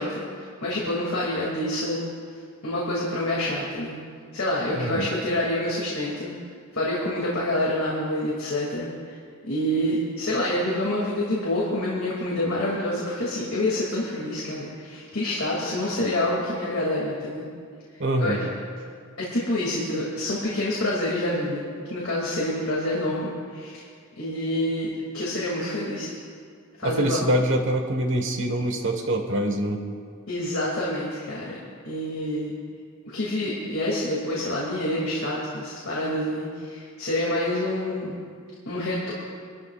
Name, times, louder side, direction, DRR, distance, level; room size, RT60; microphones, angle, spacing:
voice 1, 0.0-2.1 2.6-4.0 4.3-6.3 6.7-9.2 9.4-17.5 17.9-18.4 19.2-21.6 21.9-23.8 24.2-24.9 25.1-26.1 26.8-27.3 30.3-31.6 31.8-32.5 33.1-38.2 38.7-39.1, left 1 dB, 65° left, -5 dB, 2.6 m, -27 dB
voice 2, 4.7-5.1 18.0-18.4 26.8-29.8, right 1 dB, 60° right, 3 dB, 1.5 m, -25 dB
26.5 x 13.0 x 2.5 m, 2.1 s
head